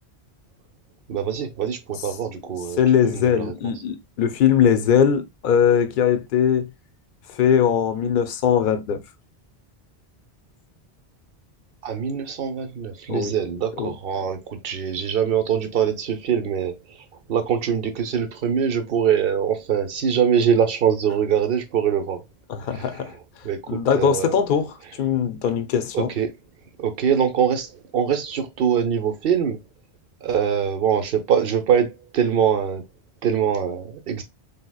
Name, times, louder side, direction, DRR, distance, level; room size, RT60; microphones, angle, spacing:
voice 1, 1.1-3.5 11.8-16.8 17.3-22.2 22.7-22.9 23.4-24.4 25.9-26.3 26.8-29.6 30.2-32.8 33.2-34.2, right 8 dB, 65° right, 0.9 m, -23 dB
voice 2, 2.8-6.7 7.4-9.0 13.1-13.3 13.8-13.9 22.5-23.1 23.7-26.1, left 8 dB, 60° left, 0.7 m, -20 dB
3.5 x 2.8 x 2.3 m
omnidirectional pair, 1.1 m